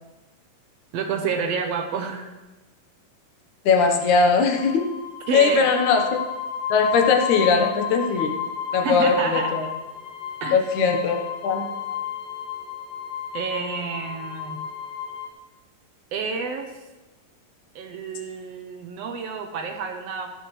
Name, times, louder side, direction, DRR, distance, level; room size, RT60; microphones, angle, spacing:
voice 1, 0.9-2.3 5.3-5.7 8.7-9.5 10.4-10.6 13.3-14.6 16.1-16.7 17.7-20.3, right 5 dB, 70° right, 5 dB, 1.6 m, -29 dB
voice 2, 3.7-4.8 5.3-6.0 6.7-8.3 8.7-9.6 10.5-11.6, left 5 dB, 65° left, 3 dB, 2.6 m, -20 dB
sound 1, 4.4-15.3, left 8 dB, 90° left, 3.0 m, -32 dB
15.5 x 12.5 x 3.3 m, 1.1 s
omnidirectional pair, 3.9 m